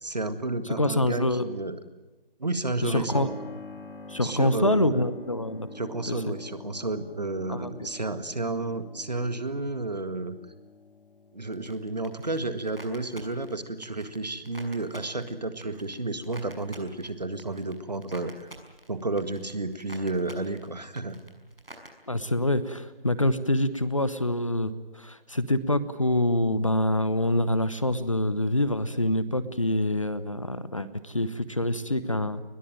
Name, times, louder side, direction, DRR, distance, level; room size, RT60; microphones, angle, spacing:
voice 1, 0.0-1.8 2.4-3.3 4.2-5.0 5.7-10.3 11.3-18.5 18.9-21.2, right 2 dB, 45° right, 11 dB, 1.8 m, -31 dB
voice 2, 0.8-1.5 2.8-3.3 4.1-5.7 6.1-6.4 7.5-7.9 22.1-32.4, left 1 dB, 35° left, 15 dB, 1.0 m, -26 dB
Keyboard (musical), 3.1-15.5, left 3 dB, 65° left, 2.7 m, -46 dB
sound 1, 11.5-21.9, right 1 dB, 80° right, 6.1 m, -49 dB
21.5 x 21.0 x 9.1 m, 1.1 s
figure-of-eight pair, 175°, 29 cm